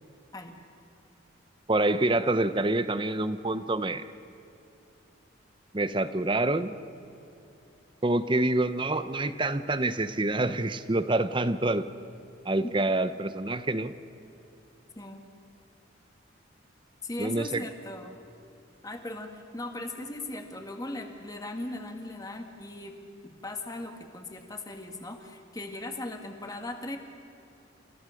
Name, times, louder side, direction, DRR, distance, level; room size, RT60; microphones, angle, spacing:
voice 1, 1.7-4.0 5.7-6.7 8.0-11.9 12.5-13.9 17.2-17.6, right 2 dB, 25° right, 12 dB, 0.7 m, -27 dB
voice 2, 17.0-18.2 18.8-23.0 23.2-27.0, left 2 dB, 20° left, 4 dB, 1.8 m, -38 dB
29.5 x 15.5 x 6.5 m, 2.8 s
head